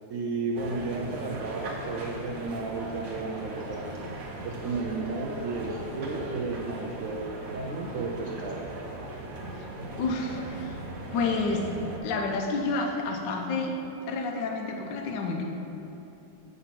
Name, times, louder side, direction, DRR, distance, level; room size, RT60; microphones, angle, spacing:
voice 1, 0.1-4.0 4.4-8.7, right 3 dB, 85° right, -1 dB, 0.7 m, -33 dB
sound 1, 0.6-12.0, right 2 dB, 55° right, 1.1 m, -39 dB
voice 2, 10.0-10.8 11.1-11.7 12.0-15.4, left 3 dB, 70° left, 2 dB, 1.3 m, -29 dB
7.9 x 4.0 x 5.8 m, 2.8 s
omnidirectional pair, 2.1 m